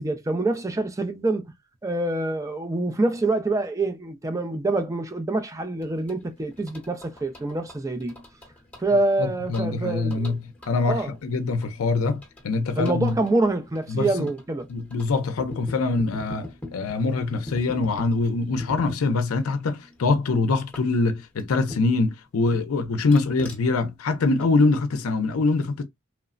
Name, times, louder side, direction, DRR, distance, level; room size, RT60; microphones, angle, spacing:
voice 1, 0.0-1.5 1.8-8.1 8.8-10.4 10.8-11.1 12.8-14.7, right 2 dB, 15° right, 0.4 m, -26 dB
sound 1, 5.8-22.1 22.5-24.7, left 2 dB, 10° left, 0.8 m, -44 dB
voice 2, 9.5-10.4 10.7-13.1 13.9-14.3 14.7-25.8, left 3 dB, 80° left, 0.5 m, -24 dB
3.1 x 2.0 x 2.4 m
head